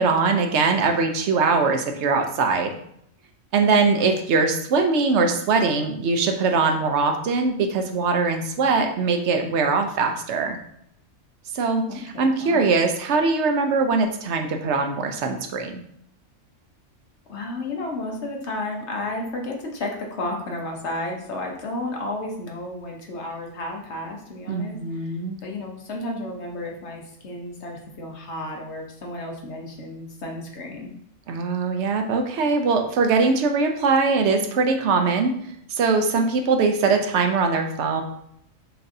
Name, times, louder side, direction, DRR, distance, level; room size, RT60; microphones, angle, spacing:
voice 1, 0.0-2.7 3.5-10.6 11.5-15.7 24.5-25.4 31.3-35.3 35.7-38.0, right 4 dB, 65° right, 4 dB, 0.8 m, -21 dB
voice 2, 3.8-4.1 8.8-8.9 11.9-12.6 17.3-25.1 25.4-30.9, left 2 dB, 60° left, 0 dB, 1.1 m, -32 dB
5.8 x 2.6 x 2.6 m, 0.72 s
omnidirectional pair, 1.4 m